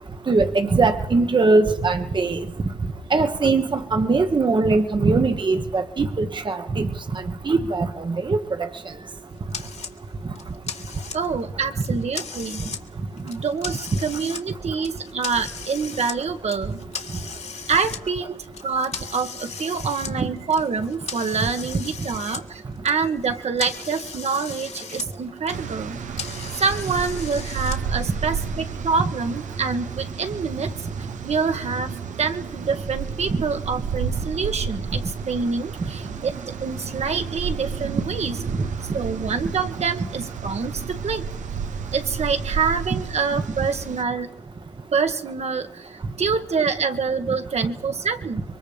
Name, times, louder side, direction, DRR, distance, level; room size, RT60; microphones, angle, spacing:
voice 1, 0.3-2.4 3.1-8.7, right 3 dB, 40° right, 7 dB, 1.3 m, -21 dB
sound 1, 9.5-9.9 10.4-11.4 11.8-12.8 13.2-14.4 14.8-16.2 16.5-18.0 18.5-22.4 22.7-25.1 25.4-27.8, left 5 dB, 60° left, 2.0 m, -36 dB
voice 2, 11.1-12.6 13.2-16.8 17.7-18.3 18.6-26.0 26.5-30.7 31.2-38.4 38.9-41.2 41.9-44.3 44.9-48.4, right 5 dB, 60° right, 6 dB, 1.7 m, -26 dB
sound 2, 25.5-44.0, right 6 dB, 85° right, 1.1 m, -32 dB
26.0 x 23.0 x 5.2 m, 0.84 s
cardioid pair, 85°, 12 cm